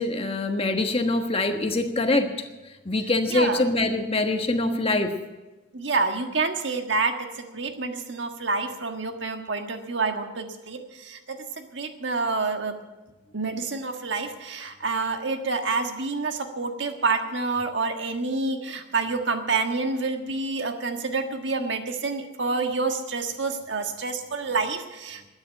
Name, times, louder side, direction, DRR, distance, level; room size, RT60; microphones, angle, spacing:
voice 1, 0.0-2.3 2.8-5.1, left 2 dB, 30° left, 5 dB, 1.3 m, -24 dB
voice 2, 3.3-3.6 5.7-12.8 13.3-25.3, right 3 dB, 70° right, 5 dB, 1.5 m, -28 dB
13.0 x 9.7 x 8.8 m, 1.1 s
head